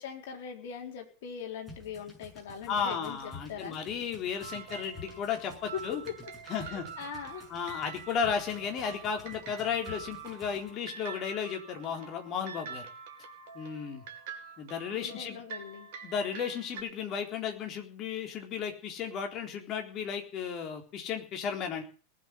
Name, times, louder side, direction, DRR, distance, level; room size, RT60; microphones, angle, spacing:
voice 1, 0.0-3.8 5.4-6.2 6.5-7.5 14.9-15.9, left 7 dB, 50° left, 2 dB, 4.3 m, -41 dB
sound 1, 1.6-10.7, left 3 dB, 5° left, 7.6 m, -51 dB
voice 2, 2.7-6.0 6.5-6.9 7.5-12.9 13.5-14.0 14.6-15.4 16.0-21.8, left 7 dB, 35° left, 4 dB, 3.9 m, -34 dB
sound 2, 4.4-16.8, right 6 dB, 50° right, 2.8 m, -46 dB
19.0 x 7.9 x 9.6 m, 0.38 s
figure-of-eight pair, 90°, 0 cm